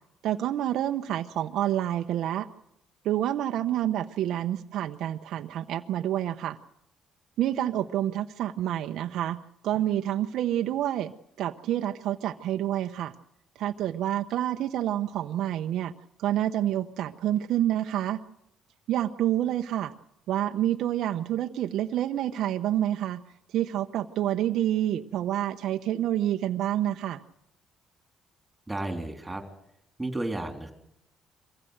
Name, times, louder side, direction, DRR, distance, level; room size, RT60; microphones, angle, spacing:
voice 1, 0.2-2.5 3.0-6.6 7.4-9.4 9.6-11.1 11.4-13.1 13.6-15.9 16.2-18.2 18.9-19.9 20.3-23.2 23.5-27.2, right 12 dB, 75° right, 6 dB, 0.8 m, -28 dB
voice 2, 28.7-29.4 30.0-30.7, right 2 dB, 10° right, 7 dB, 3.4 m, -32 dB
23.5 x 16.0 x 8.0 m, 0.78 s
cardioid pair, 105°, 0 cm